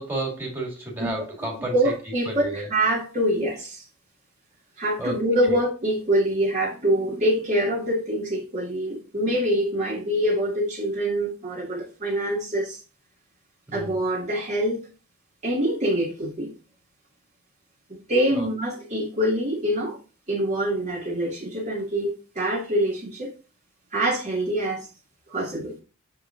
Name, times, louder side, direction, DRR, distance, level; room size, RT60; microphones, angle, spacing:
voice 1, 0.0-1.9 2.2-2.7 5.0-5.6 13.7-14.0 18.3-18.5, right 1 dB, 10° right, 2.1 m, -32 dB
voice 2, 1.7-3.8 4.8-12.8 13.7-14.8 15.4-16.5 17.9-20.0 20.3-23.3 23.9-24.9 25.3-25.7, right 1 dB, 30° right, 1.6 m, -25 dB
7.0 x 3.8 x 3.6 m
head